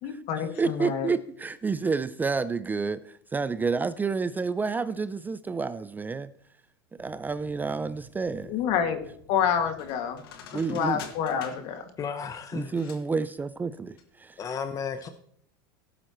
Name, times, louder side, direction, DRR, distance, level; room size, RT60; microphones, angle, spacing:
voice 1, 0.0-1.1 8.5-9.0 9.3-10.2 10.7-11.8, left 8 dB, 55° left, 5 dB, 2.1 m, -28 dB
voice 2, 0.6-6.3 6.9-8.6 10.5-11.0 12.5-14.4, right 4 dB, 15° right, 14 dB, 0.4 m, -29 dB
sound 1, 7.0-14.1 14.4-14.5, left 6 dB, 80° left, 1.8 m, -49 dB
voice 3, 12.0-12.7 14.4-15.1, left 6 dB, 30° left, 9 dB, 0.9 m, -33 dB
17.5 x 7.6 x 3.1 m, 0.67 s
supercardioid pair, 110°, 12 cm